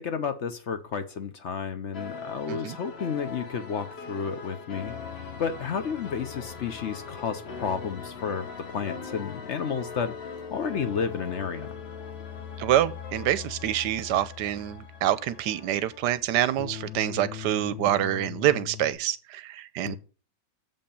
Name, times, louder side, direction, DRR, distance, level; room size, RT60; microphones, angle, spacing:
voice 1, 0.0-11.8 19.8-20.0, left 6 dB, 60° left, 0.7 m, -32 dB
sound 1, 1.9-15.7, left 5 dB, 40° left, 1.1 m, -43 dB
sound 2, 4.8-18.9, left 8 dB, 90° left, 2.0 m, -42 dB
voice 2, 12.6-20.0, right 12 dB, 75° right, 1.1 m, -26 dB
7.5 x 5.4 x 6.8 m
omnidirectional pair, 2.0 m